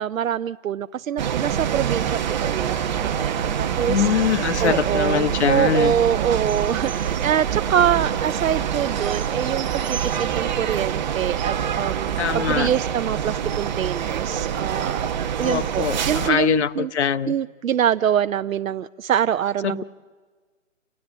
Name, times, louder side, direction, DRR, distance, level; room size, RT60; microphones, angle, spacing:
voice 1, 0.0-4.1 4.6-15.1 15.4-16.9 17.3-19.8, right 9 dB, 90° right, 12 dB, 0.6 m, -24 dB
sound 1, 1.2-16.3, right 8 dB, 35° right, 1.1 m, -25 dB
voice 2, 3.8-5.9 12.2-12.7 15.4-17.3 19.6-19.8, left 8 dB, 60° left, 16 dB, 0.9 m, -23 dB
28.5 x 18.0 x 7.9 m, 1.5 s
hypercardioid pair, 160°, 39 cm